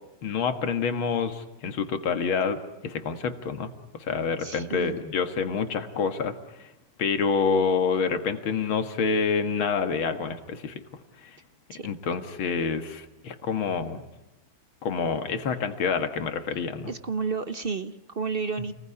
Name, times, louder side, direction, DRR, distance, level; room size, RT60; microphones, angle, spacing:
voice 1, 0.2-6.7 7.0-10.7 11.2-11.4 11.8-14.0 14.8-16.9, left 5 dB, 90° left, 8 dB, 2.5 m, -27 dB
voice 2, 4.4-5.0 11.7-11.9 16.9-18.7, right 5 dB, 40° right, 11 dB, 0.9 m, -31 dB
29.0 x 20.5 x 10.0 m, 0.99 s
omnidirectional pair, 2.2 m